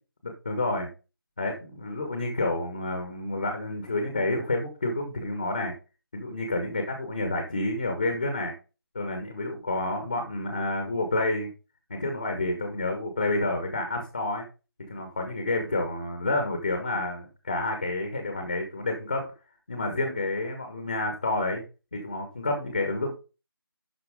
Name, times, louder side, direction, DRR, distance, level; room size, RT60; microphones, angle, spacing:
voice 1, 0.2-0.9 1.4-5.7 6.1-8.5 8.9-11.5 12.0-14.4 14.9-19.2 19.7-21.6 21.9-23.1, left 2 dB, 25° left, 4 dB, 1.4 m, -29 dB
11.5 x 4.5 x 3.6 m, 0.31 s
figure-of-eight pair, 175°, 13 cm